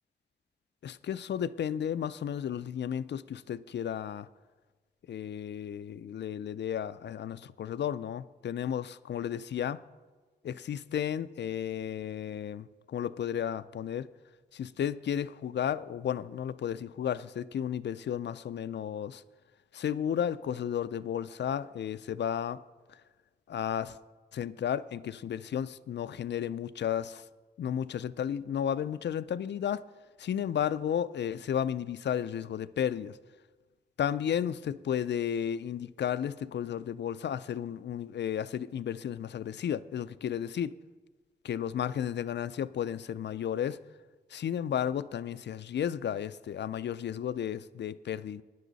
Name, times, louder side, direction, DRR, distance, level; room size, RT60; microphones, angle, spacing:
voice 1, 0.8-4.3 5.1-9.8 10.4-14.1 14.5-19.2 19.7-22.6 23.5-24.0 24.3-27.2 27.6-29.8 30.2-33.2 34.0-40.7 41.4-43.8 44.3-48.4, left 9 dB, 85° left, 0.4 m, -33 dB
16.5 x 10.0 x 4.0 m
wide cardioid pair, 130°, 18 cm